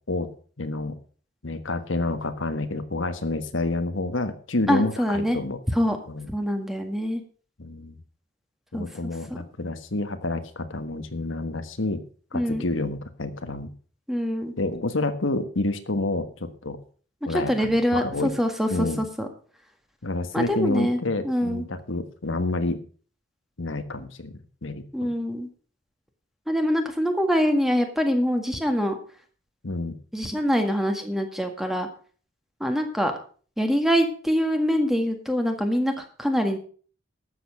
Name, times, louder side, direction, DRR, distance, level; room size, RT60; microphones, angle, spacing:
voice 1, 0.6-1.0 1.4-5.6 6.1-6.3 7.6-8.0 8.7-12.0 12.3-13.7 14.6-16.8 17.2-18.3 18.7-19.0 20.0-22.8 23.6-25.1 29.6-30.0, left 2 dB, 85° left, 9 dB, 1.5 m, -29 dB
voice 2, 4.7-5.4 5.7-6.0 6.3-7.2 8.7-8.9 12.3-12.6 14.1-14.5 17.3-19.3 20.3-21.0 21.2-21.6 24.9-25.5 26.5-29.0 30.1-31.9 32.6-33.1 33.6-36.6, equal, ahead, 5 dB, 1.8 m, -24 dB
12.5 x 8.0 x 6.4 m, 0.42 s
head